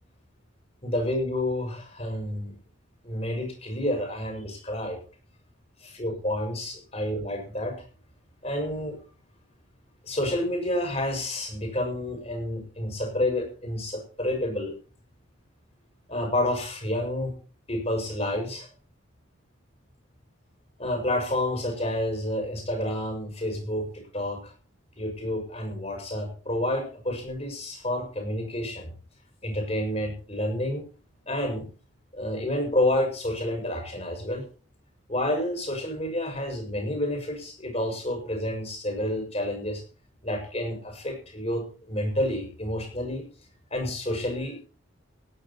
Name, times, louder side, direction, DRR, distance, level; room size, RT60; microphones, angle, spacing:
voice 1, 0.8-2.5 3.0-5.0 5.8-7.8 8.4-9.0 10.1-14.7 16.1-17.3 17.7-18.7 20.8-23.9 24.1-24.5 25.0-28.9 29.4-30.8 31.3-31.7 32.1-34.4 35.1-39.8 40.2-43.2 43.7-44.7, left 1 dB, 30° left, 3 dB, 6.3 m, -29 dB
17.0 x 11.0 x 4.3 m, 0.37 s
head